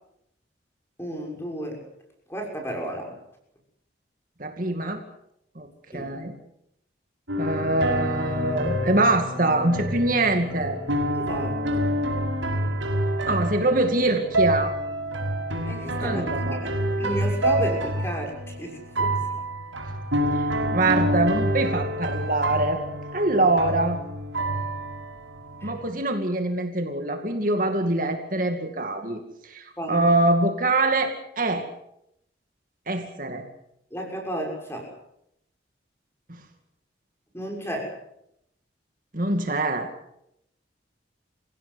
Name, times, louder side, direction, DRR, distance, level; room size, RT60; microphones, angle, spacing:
voice 1, 1.0-1.8 2.3-3.2 5.9-6.1 11.2-12.0 15.7-19.2 25.6-25.7 29.8-30.0 33.9-34.9 37.3-37.9, equal, 15° left, 1 dB, 6.5 m, -33 dB
voice 2, 4.4-5.0 5.6-6.3 7.4-10.8 13.2-14.8 16.0-16.7 20.3-22.8 23.1-24.0 25.6-31.7 32.9-33.5 36.3-36.4 39.1-39.9, right 2 dB, 45° right, 5 dB, 2.4 m, -24 dB
sound 1, 7.3-25.8, right 1 dB, 90° right, 6.2 m, -27 dB
27.5 x 16.5 x 8.1 m, 0.79 s
head